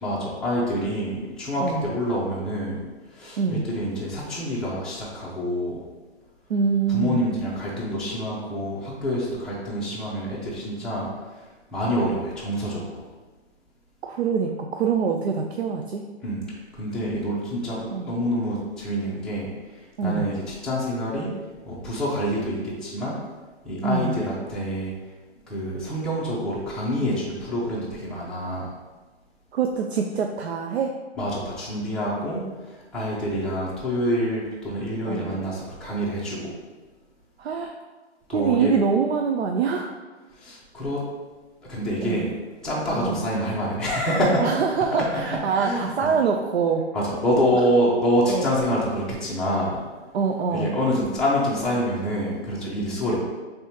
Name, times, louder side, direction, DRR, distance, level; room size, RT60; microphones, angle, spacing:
voice 1, 0.0-2.8 3.1-5.8 6.9-11.1 11.7-13.0 16.2-16.4 16.7-19.5 20.0-21.3 21.7-23.2 23.6-24.9 25.5-28.7 31.2-32.4 32.9-36.5 38.3-38.7 40.4-41.0 41.7-42.3 42.6-44.5 45.0-45.2 45.5-45.9 46.9-49.8 50.5-53.2, equal, ahead, -8 dB, 0.6 m, -26 dB
voice 2, 1.6-1.9 3.4-3.7 6.5-7.2 14.0-16.0 17.9-18.1 20.0-20.3 23.8-24.2 29.5-30.9 35.0-35.3 37.4-37.8 38.3-39.9 42.0-42.3 42.9-43.2 44.4-46.9 47.5-47.6 48.3-48.5 50.1-50.8 53.1-53.2, right 6 dB, 65° right, 3 dB, 0.5 m, -25 dB
5.3 x 3.3 x 2.9 m, 1.3 s
figure-of-eight pair, 130°, 34 cm